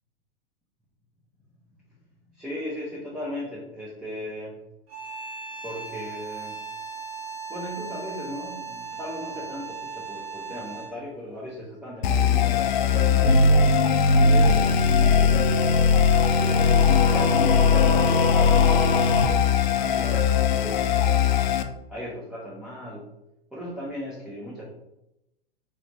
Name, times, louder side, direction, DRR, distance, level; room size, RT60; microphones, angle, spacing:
voice 1, 2.3-4.6 5.6-6.6 7.5-13.7 14.2-15.8 16.4-21.3 21.9-23.1 23.5-24.6, equal, ahead, -6 dB, 0.7 m, -37 dB
sound 1, 4.9-11.1, right 5 dB, 45° right, 0.9 m, -37 dB
sound 2, 12.0-21.6, left 5 dB, 55° left, 0.4 m, -19 dB
3.9 x 2.9 x 3.2 m, 0.88 s
figure-of-eight pair, 100°, 29 cm